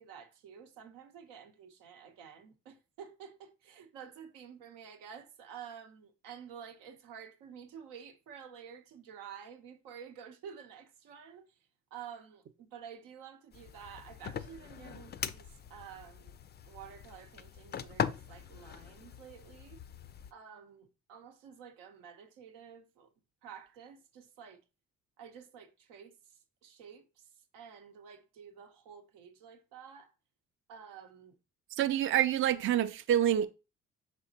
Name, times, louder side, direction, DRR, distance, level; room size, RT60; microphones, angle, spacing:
voice 1, 0.0-16.4 16.6-19.8 20.3-23.1 23.4-24.6 25.2-30.1 30.7-31.4, right 8 dB, 85° right, 0.7 m, -51 dB
sound 1, 13.5-20.3, left 8 dB, 35° left, 0.4 m, -41 dB
voice 2, 31.8-33.5, right 11 dB, 40° right, 0.4 m, -27 dB
5.1 x 3.4 x 2.7 m
supercardioid pair, 60°, 32 cm